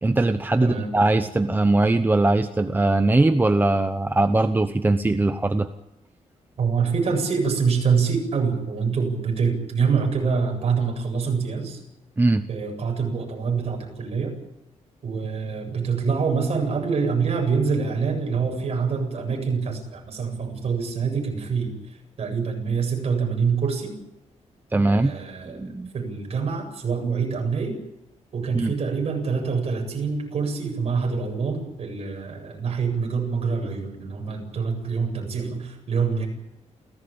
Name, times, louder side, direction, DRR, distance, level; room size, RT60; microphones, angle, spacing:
voice 1, 0.0-5.7 12.2-12.5 24.7-25.1 25.5-25.9 28.5-28.7, right 2 dB, 15° right, 8 dB, 1.0 m, -20 dB
voice 2, 6.6-11.8 12.5-14.3 15.0-21.7 22.2-23.9 24.8-25.6 25.9-27.8 28.3-36.3, right 5 dB, 55° right, 3 dB, 7.8 m, -25 dB
28.5 x 17.5 x 8.7 m, 0.91 s
wide cardioid pair, 150°, 12 cm